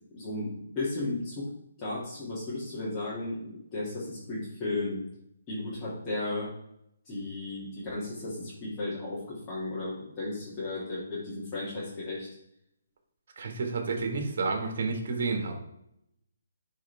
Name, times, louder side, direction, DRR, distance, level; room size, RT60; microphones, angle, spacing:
voice 1, 0.1-1.5 1.8-5.0 5.5-6.5 7.0-12.3, left 2 dB, 20° left, -10 dB, 2.7 m, -34 dB
voice 2, 13.4-15.6, right 4 dB, 55° right, 4 dB, 1.9 m, -30 dB
10.5 x 4.6 x 3.6 m, 0.78 s
hypercardioid pair, 155°, 0 cm